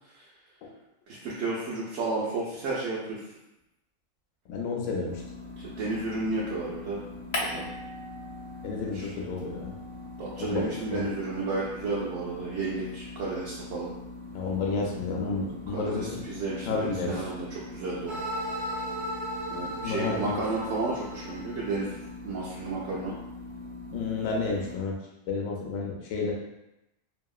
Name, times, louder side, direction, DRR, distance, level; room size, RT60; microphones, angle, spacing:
voice 1, 1.1-3.2 5.6-7.0 7.4-7.7 8.9-9.1 10.2-13.9 15.7-18.2 19.5-22.0 22.2-23.2, right 3 dB, 70° right, -6 dB, 0.9 m, -32 dB
voice 2, 4.5-5.2 8.6-9.8 10.4-11.1 14.3-16.2 16.6-17.1 19.8-20.4 23.9-25.0 25.3-26.3, left 4 dB, 70° left, -1 dB, 0.9 m, -31 dB
sound 1, 5.1-24.8, left 3 dB, 90° right, 1.1 m, -43 dB
sound 2, 7.3-9.0 9.3-11.8, left 1 dB, 45° left, 0.5 m, -39 dB
sound 3, 18.1-22.1, equal, 50° right, 0.7 m, -36 dB
2.8 x 2.7 x 2.3 m, 0.91 s
omnidirectional pair, 1.4 m